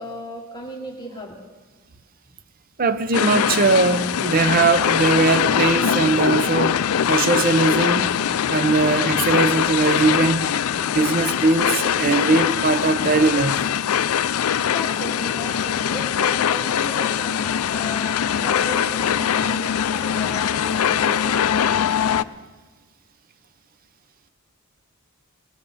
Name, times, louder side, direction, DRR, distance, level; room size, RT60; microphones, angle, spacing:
voice 1, 0.0-1.4 14.6-21.8, left 1 dB, 20° left, 1.4 m, -35 dB
voice 2, 2.8-8.2 8.5-10.5 10.9-13.6, right 3 dB, 40° right, 0.7 m, -20 dB
sound 1, 3.1-22.2, left 9 dB, 75° left, 0.4 m, -22 dB
19.0 x 18.0 x 4.1 m
head